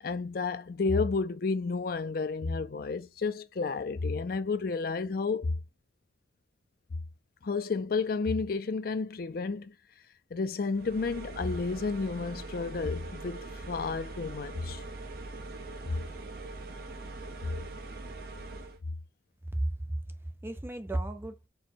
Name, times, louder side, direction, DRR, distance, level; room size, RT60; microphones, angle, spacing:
voice 1, 0.0-5.5 7.4-9.7 10.3-14.8 15.8-16.0, left 4 dB, 50° left, 0.4 m, -31 dB
sound 1, 10.7-18.8, right 2 dB, 55° right, 0.7 m, -42 dB
voice 2, 19.4-21.5, right 1 dB, 10° right, 0.4 m, -34 dB
4.7 x 2.2 x 4.2 m
head